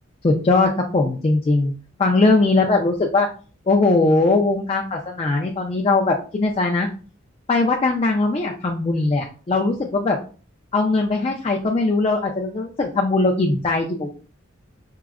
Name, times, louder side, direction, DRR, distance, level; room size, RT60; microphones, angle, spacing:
voice 1, 0.2-1.7 2.0-3.3 3.7-6.9 7.5-10.2 10.7-14.1, left 3 dB, 30° left, 0 dB, 0.4 m, -20 dB
4.6 x 2.0 x 2.3 m, 0.37 s
head